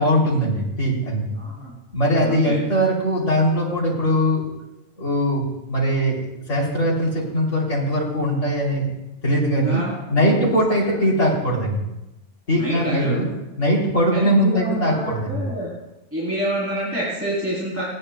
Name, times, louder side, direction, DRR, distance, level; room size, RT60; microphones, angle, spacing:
voice 1, 0.0-1.4 1.9-4.4 5.0-5.4 5.7-6.2 6.5-8.9 9.2-9.8 10.1-11.8 12.5-13.3 13.6-15.4, equal, 75° left, -2 dB, 3.4 m, -20 dB
voice 2, 1.3-1.7 2.2-2.6 9.6-10.5 10.9-11.0 12.6-13.4 14.1-15.7 16.1-17.8, equal, 10° right, -7 dB, 3.2 m, -28 dB
26.0 x 10.0 x 2.2 m, 0.93 s
omnidirectional pair, 1.2 m